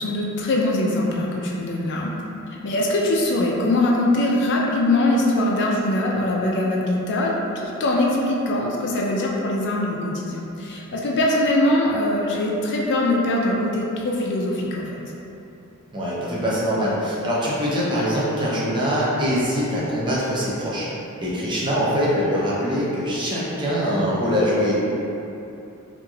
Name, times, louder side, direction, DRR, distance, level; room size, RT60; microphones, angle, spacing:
voice 1, 0.0-2.1 2.6-15.0, left 1 dB, 55° left, -2 dB, 0.4 m, -22 dB
voice 2, 15.9-20.9 21.2-24.7, equal, 20° right, -7 dB, 0.5 m, -23 dB
3.2 x 2.5 x 2.3 m, 2.9 s
head